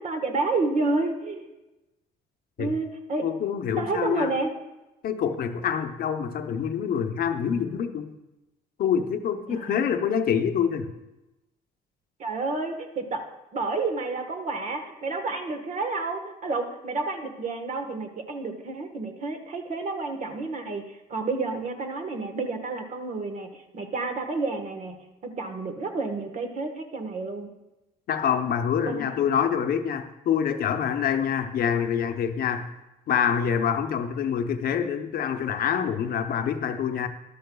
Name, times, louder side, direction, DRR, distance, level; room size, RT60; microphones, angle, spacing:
voice 1, 0.0-1.5 2.6-3.2 3.8-4.5 9.5-9.9 12.2-13.2 13.5-25.0 25.2-27.5 28.8-29.1, right 3 dB, 45° right, 6 dB, 1.3 m, -30 dB
voice 2, 3.2-4.3 5.0-8.1 8.8-10.9 28.1-32.7 33.1-37.1, left 8 dB, 60° left, 7 dB, 0.8 m, -26 dB
13.5 x 11.5 x 2.3 m, 1.0 s
cardioid pair, 110°, 17 cm